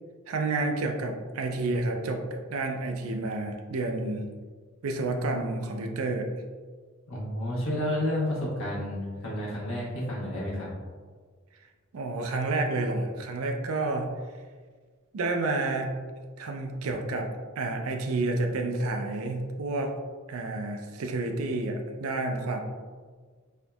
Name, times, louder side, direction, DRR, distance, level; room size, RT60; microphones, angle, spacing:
voice 1, 0.3-4.3 4.8-6.3 11.9-14.1 15.1-15.9 16.4-20.0 20.3-22.6, right 2 dB, 75° right, 4 dB, 0.4 m, -30 dB
voice 2, 7.1-10.7, left 1 dB, 65° left, -5 dB, 1.1 m, -30 dB
4.4 x 2.7 x 2.3 m, 1.5 s
head